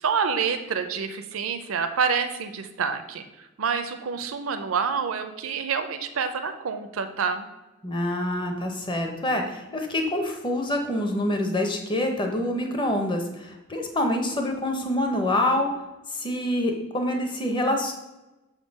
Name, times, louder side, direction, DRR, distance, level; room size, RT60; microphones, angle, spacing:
voice 1, 0.0-7.5, right 6 dB, 80° right, 8 dB, 0.5 m, -27 dB
voice 2, 7.8-15.7 16.1-17.9, left 1 dB, 25° left, 4 dB, 0.7 m, -26 dB
6.4 x 3.7 x 5.2 m, 1.0 s
head